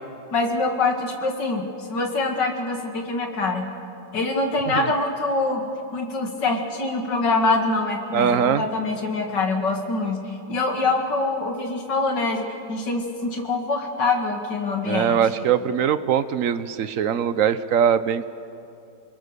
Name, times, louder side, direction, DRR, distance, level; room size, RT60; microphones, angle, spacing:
voice 1, 0.3-3.7 4.1-10.2 10.5-15.2, left 3 dB, 85° left, 3 dB, 2.9 m, -24 dB
voice 2, 8.1-8.6 14.8-18.3, right 8 dB, 60° right, 13 dB, 1.0 m, -21 dB
28.5 x 21.0 x 6.7 m, 2.6 s
omnidirectional pair, 1.9 m